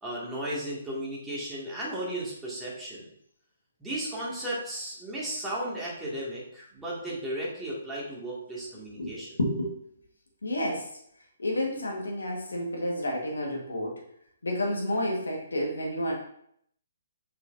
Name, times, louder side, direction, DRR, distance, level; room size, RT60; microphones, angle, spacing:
voice 1, 0.0-3.1 3.8-9.4, right 1 dB, 10° right, -7 dB, 2.2 m, -35 dB
voice 2, 9.4-9.7 10.4-10.9 11.4-14.0 14.4-16.1, left 1 dB, 75° left, -1 dB, 1.6 m, -30 dB
6.5 x 5.9 x 2.7 m, 0.68 s
figure-of-eight pair, 135°, 0 cm